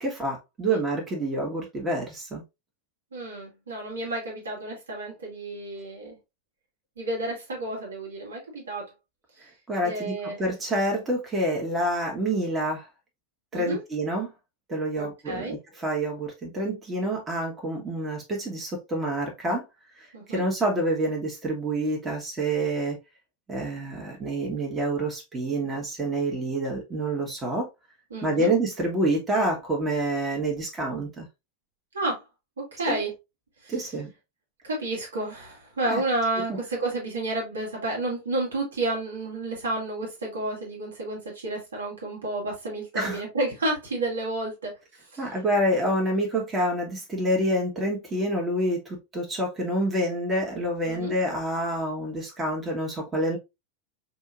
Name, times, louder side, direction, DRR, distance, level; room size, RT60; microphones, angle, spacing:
voice 1, 0.0-2.4 9.7-12.9 13.5-14.3 14.7-19.7 20.0-23.0 23.5-27.7 28.2-31.3 32.9-33.0 33.7-34.1 35.9-36.0 42.9-43.2 45.2-53.4, right 1 dB, 15° right, 1.4 m, -27 dB
voice 2, 3.1-6.2 7.0-8.9 9.8-10.4 13.5-13.8 14.9-15.5 20.1-20.4 28.1-28.5 31.9-32.2 32.6-33.1 33.6-33.7 34.6-44.8 45.1-45.4 50.8-51.1, right 2 dB, 70° right, 1.6 m, -31 dB
5.3 x 2.8 x 2.4 m
figure-of-eight pair, 90°, 0 cm